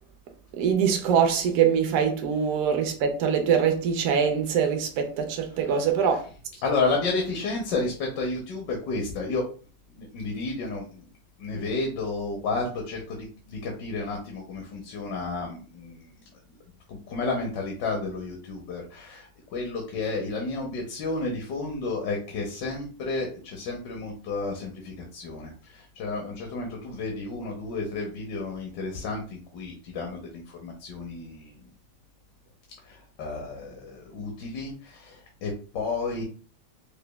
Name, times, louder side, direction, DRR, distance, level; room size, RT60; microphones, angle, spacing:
voice 1, 0.5-6.3, right 7 dB, 70° right, 0.8 m, -23 dB
voice 2, 5.4-6.2 6.6-9.4 10.0-11.0 11.4-13.2 13.5-16.1 16.9-31.6 32.8-36.2, left 3 dB, 75° left, 1.4 m, -32 dB
5.0 x 2.2 x 2.2 m
omnidirectional pair, 2.0 m